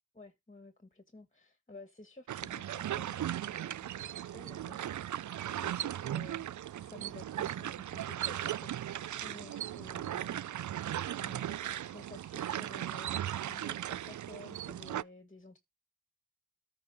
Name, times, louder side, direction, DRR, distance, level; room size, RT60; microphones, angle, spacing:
voice 1, 0.1-5.3 5.6-6.5 6.7-10.4 11.2-15.6, left 2 dB, 20° left, 1.8 m, -53 dB
sound 1, 2.3-15.0, right 11 dB, 50° right, 0.4 m, -37 dB
13.5 x 4.8 x 3.7 m
cardioid pair, 45°, 38 cm